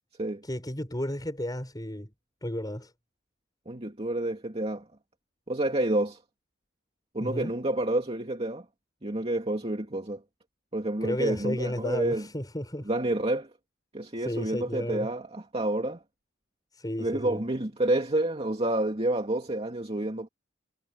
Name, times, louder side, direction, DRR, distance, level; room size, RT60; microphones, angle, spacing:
voice 1, 0.4-2.1 2.4-2.9 7.2-7.5 11.0-12.9 14.2-15.1 16.7-17.4, left 1 dB, 20° left, 5.6 m, -33 dB
voice 2, 3.7-4.8 5.5-6.2 7.1-8.6 9.0-10.2 10.7-12.3 12.9-13.5 13.9-16.0 17.0-20.3, right 1 dB, 30° right, 2.5 m, -29 dB
head